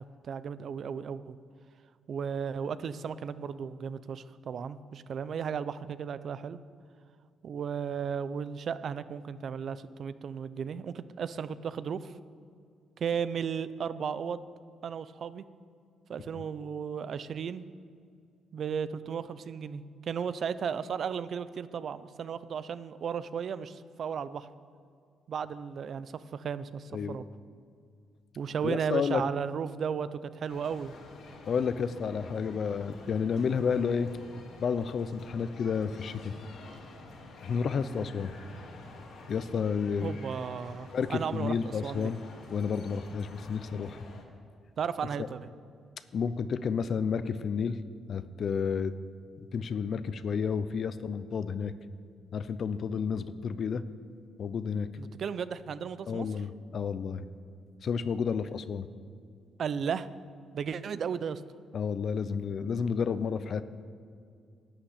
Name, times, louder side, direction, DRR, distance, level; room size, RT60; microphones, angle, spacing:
voice 1, 0.2-1.4 2.1-6.6 7.4-12.1 13.0-14.5 14.8-15.4 16.1-17.6 18.5-24.5 25.3-27.3 28.4-30.9 40.0-42.1 44.8-45.4 55.0-56.3 59.6-60.1 60.5-61.4, right 7 dB, 55° right, 15 dB, 0.5 m, -35 dB
voice 2, 28.6-29.2 31.5-34.1 34.6-36.3 37.4-38.3 39.3-40.2 40.9-42.2 42.5-44.0 45.2-45.3 46.1-47.8 48.1-48.9 49.4-51.7 52.3-53.8 54.4-54.9 56.1-57.3 57.8-58.9 61.7-63.6, left 6 dB, 55° left, 13 dB, 0.6 m, -31 dB
sound 1, 30.5-44.2, left 3 dB, 75° left, 2.4 m, -49 dB
11.5 x 8.9 x 8.3 m, 2.3 s
cardioid pair, 90°, 0 cm